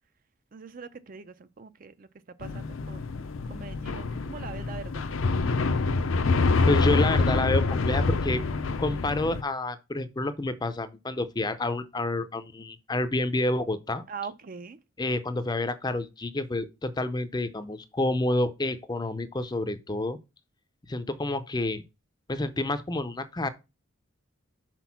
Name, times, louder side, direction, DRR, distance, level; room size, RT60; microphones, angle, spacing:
voice 1, 0.5-2.1 2.4-3.1 3.5-5.1 14.1-14.8, right 5 dB, 40° right, 0.4 m, -42 dB
sound 1, 2.4-9.4, left 3 dB, 65° left, 0.5 m, -26 dB
voice 2, 6.7-8.4 8.8-14.0 15.0-20.2 20.9-21.8 22.3-23.5, left 2 dB, 20° left, 0.5 m, -29 dB
6.1 x 4.5 x 5.7 m
head